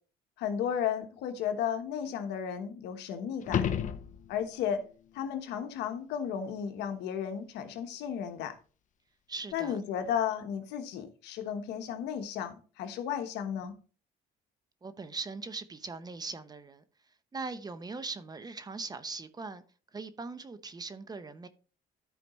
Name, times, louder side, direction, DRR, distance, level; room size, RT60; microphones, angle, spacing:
voice 1, 0.4-3.7 4.3-4.9 5.1-8.6 9.5-13.7, left 8 dB, 85° left, 1.2 m, -34 dB
sound 1, 3.4-4.7 9.5-9.6, left 9 dB, 50° left, 0.8 m, -32 dB
voice 2, 9.3-9.8 14.8-16.8 17.3-19.6 19.9-21.5, right 4 dB, 25° right, 0.8 m, -40 dB
13.5 x 5.0 x 3.1 m
cardioid pair, 110°, 17 cm